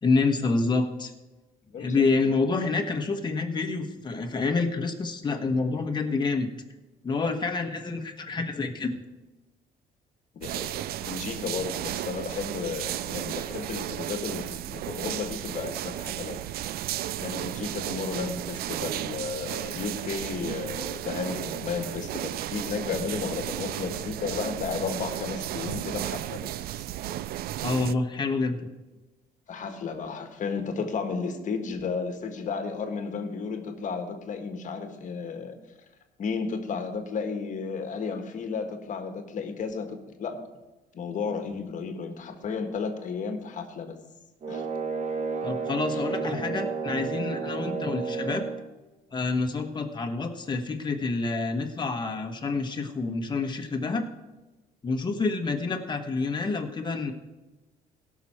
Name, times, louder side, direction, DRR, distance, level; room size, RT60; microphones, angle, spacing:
voice 1, 0.0-1.1 1.8-6.5 7.0-9.0 27.6-28.6 45.4-48.4 49.1-54.1 54.8-57.1, left 3 dB, 25° left, 4 dB, 1.4 m, -27 dB
voice 2, 10.3-16.4 17.2-26.5 29.5-35.6 36.2-40.4 40.9-44.0 44.5-44.7 47.6-47.8, left 5 dB, 50° left, 7 dB, 1.5 m, -33 dB
sound 1, 10.4-27.9, right 13 dB, 65° right, 0.4 m, -34 dB
sound 2, 44.4-48.7, right 4 dB, 45° right, 1.4 m, -31 dB
17.0 x 6.2 x 4.4 m, 1.1 s
cardioid pair, 110°, 17 cm